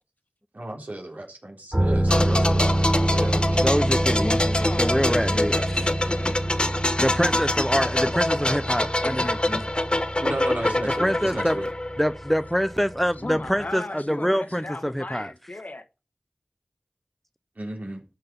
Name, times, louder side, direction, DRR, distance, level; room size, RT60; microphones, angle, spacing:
voice 1, 0.5-2.7 3.0-3.4 10.2-11.7 17.6-18.0, right 1 dB, 85° right, 3.7 m, -33 dB
sound 1, 1.7-13.3 13.6-13.7, right 1 dB, 35° right, 3.7 m, -27 dB
sound 2, 2.1-12.7 13.0-13.2, left 1 dB, 40° left, 1.1 m, -25 dB
voice 2, 3.6-4.4 4.8-5.9 7.0-9.6 10.8-11.6 12.0-15.3, equal, 5° left, 0.5 m, -25 dB
voice 3, 4.1-6.4 8.1-8.2 9.0-9.5 13.2-15.8, left 2 dB, 75° left, 1.4 m, -36 dB
12.5 x 5.9 x 5.4 m
wide cardioid pair, 45°, 3 cm